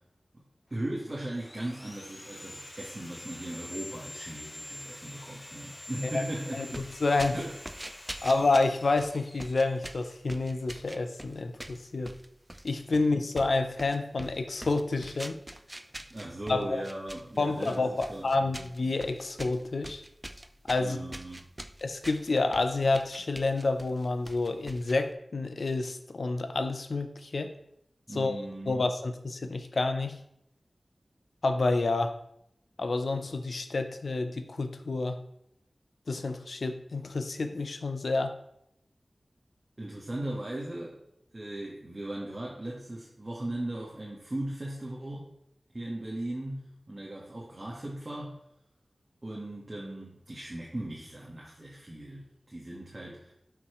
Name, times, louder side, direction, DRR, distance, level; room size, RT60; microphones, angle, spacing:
voice 1, 0.7-6.9 7.3-7.5 8.0-8.4 16.1-18.6 20.8-21.5 28.1-28.9 39.8-41.0 41.3-45.3 45.7-48.4 49.2-53.3, right 1 dB, 35° right, -4 dB, 1.7 m, -38 dB
Sawing, 0.8-10.6, left 1 dB, 25° left, 0.8 m, -46 dB
voice 2, 6.5-7.3 8.2-12.1 12.6-15.4 16.5-16.8 17.4-20.0 20.7-21.0 21.8-27.5 28.1-28.4 28.7-30.2 31.4-32.1 32.8-35.2 36.1-38.3, left 3 dB, 80° left, 8 dB, 0.7 m, -29 dB
sound 1, 6.7-25.1, right 1 dB, 15° right, 0.4 m, -44 dB
11.5 x 5.8 x 3.2 m, 0.76 s
wide cardioid pair, 85°, 0 cm